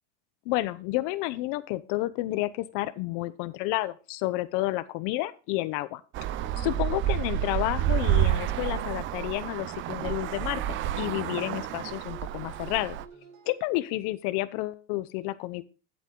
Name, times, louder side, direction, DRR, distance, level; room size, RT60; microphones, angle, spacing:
voice 1, 0.5-6.0 6.6-13.0 13.5-15.6, left 18 dB, 55° left, 15 dB, 0.8 m, -30 dB
Traffic noise roadway noise, 6.1-13.1, right 12 dB, 35° right, 0.5 m, -29 dB
sound 1, 6.2-13.6, right 5 dB, 90° right, 4.1 m, -49 dB
10.5 x 8.3 x 3.8 m, 0.35 s
supercardioid pair, 145°, 37 cm